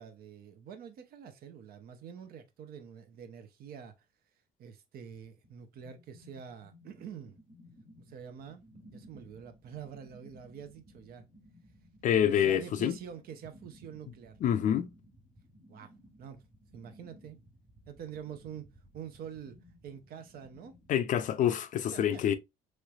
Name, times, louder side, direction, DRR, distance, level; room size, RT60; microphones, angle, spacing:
voice 1, 0.0-3.9 4.6-7.4 8.1-8.6 8.9-11.2 12.1-14.8 15.7-16.4 16.7-17.4 17.9-19.6 19.8-20.7 21.9-22.4, right 8 dB, 60° right, 0.7 m, -46 dB
sound 1, 5.4-20.9, equal, 35° right, 1.5 m, -58 dB
voice 2, 12.0-12.9 14.4-14.9 20.9-22.3, left 9 dB, 50° left, 0.4 m, -27 dB
3.2 x 3.1 x 2.3 m
cardioid pair, 110°, 17 cm